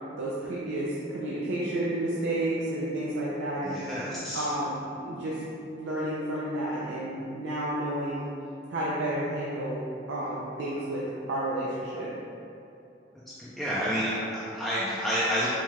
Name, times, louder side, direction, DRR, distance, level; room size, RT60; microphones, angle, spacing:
voice 1, 0.1-3.8 4.3-5.4 5.7-8.3 8.7-9.8 10.1-12.1, right 1 dB, 80° right, -7 dB, 0.4 m, -31 dB
voice 2, 3.6-4.5 13.4-15.5, equal, ahead, -10 dB, 0.3 m, -29 dB
4.6 x 2.3 x 2.9 m, 2.6 s
head